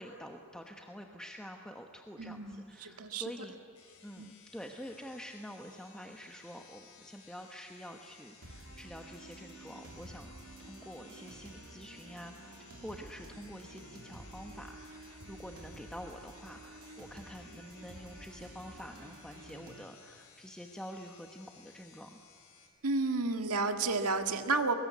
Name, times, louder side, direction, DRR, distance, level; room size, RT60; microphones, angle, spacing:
voice 1, 0.0-3.6 4.0-10.3 10.6-22.2, equal, 5° left, 2 dB, 1.1 m, -47 dB
voice 2, 2.2-3.3 4.2-4.3 22.8-24.7, right 3 dB, 90° right, 6 dB, 1.8 m, -32 dB
sound 1, 3.7-22.7, left 6 dB, 75° left, 4.5 m, -59 dB
sound 2, 8.4-19.8, right 2 dB, 75° right, 2.6 m, -51 dB
24.0 x 21.0 x 9.5 m, 2.2 s
head